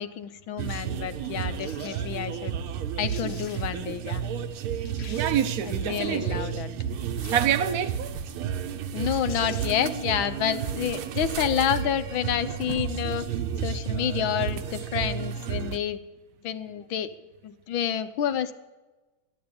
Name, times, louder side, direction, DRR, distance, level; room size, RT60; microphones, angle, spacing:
voice 1, 0.0-2.6 3.0-4.2 5.6-6.7 8.9-13.3 13.6-16.0 16.4-17.1 17.4-18.5, left 9 dB, 75° left, 1.6 m, -29 dB
sound 1, 0.6-15.8, right 8 dB, 85° right, 1.7 m, -32 dB
sound 2, 1.6-2.1 2.8-2.9 3.1-3.9 4.4-4.5 4.9-5.9 7.2-8.1 8.9-9.0 9.3-10.0 10.3-10.4, left 5 dB, 45° left, 1.4 m, -47 dB
voice 2, 5.0-6.6 7.3-8.2, right 9 dB, 65° right, 0.9 m, -27 dB
12.0 x 11.0 x 8.6 m
omnidirectional pair, 2.3 m